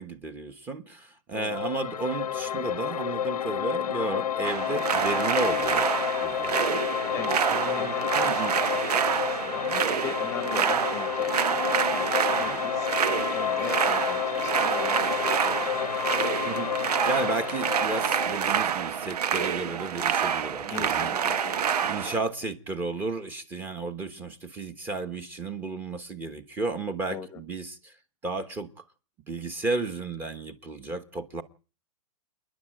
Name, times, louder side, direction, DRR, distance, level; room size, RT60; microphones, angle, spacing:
voice 1, 0.0-5.9 6.2-6.8 7.5-8.5 12.4-12.6 16.4-16.7 17.1-21.1 21.8-27.9 28.2-28.7 29.3-31.4, right 3 dB, 10° right, 1.2 m, -33 dB
voice 2, 1.3-1.6 7.1-7.4 7.7-12.9 13.2-15.7 20.6-22.2 27.1-27.4, left 9 dB, 15° left, 1.0 m, -41 dB
sound 1, 1.5-18.5, left 10 dB, 80° left, 1.0 m, -30 dB
sound 2, 4.4-22.2, right 8 dB, 85° right, 1.3 m, -27 dB
28.5 x 11.0 x 9.0 m
hypercardioid pair, 175°, 20 cm